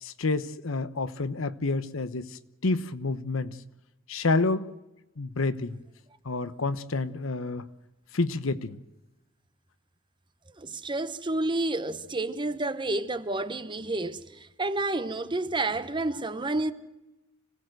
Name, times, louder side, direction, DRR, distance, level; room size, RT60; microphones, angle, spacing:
voice 1, 0.0-3.6 4.1-4.7 5.2-5.8 6.2-7.7 8.1-8.8, left 3 dB, 75° left, 1.0 m, -29 dB
voice 2, 10.6-14.2 14.6-16.7, right 2 dB, 25° right, 1.0 m, -29 dB
26.0 x 17.0 x 7.8 m
head